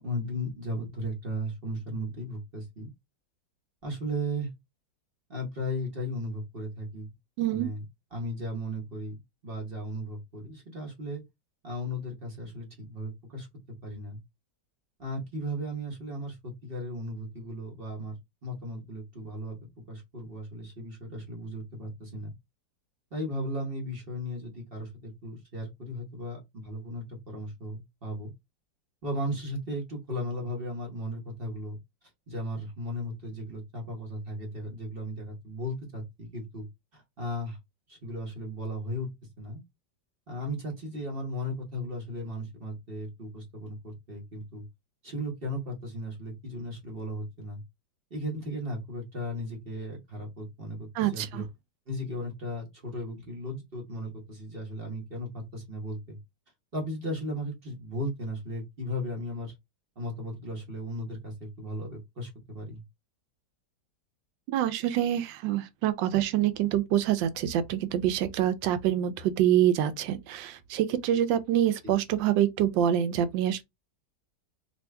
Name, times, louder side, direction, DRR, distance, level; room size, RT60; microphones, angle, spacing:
voice 1, 0.0-2.9 3.8-4.5 5.3-7.1 7.5-7.8 8.1-11.2 11.6-13.5 13.8-14.2 15.0-18.1 18.4-19.6 19.9-22.3 23.1-28.3 29.0-31.8 32.3-36.7 36.9-37.6 37.9-39.1 39.4-39.6 40.3-44.6 45.0-47.6 48.1-51.4 51.9-56.2 56.7-59.5 60.0-62.8, equal, 35° right, 1.1 m, -36 dB
voice 2, 7.4-7.7 50.9-51.4 64.5-73.6, right 11 dB, 90° right, 1.3 m, -26 dB
3.0 x 2.7 x 3.2 m
omnidirectional pair, 2.0 m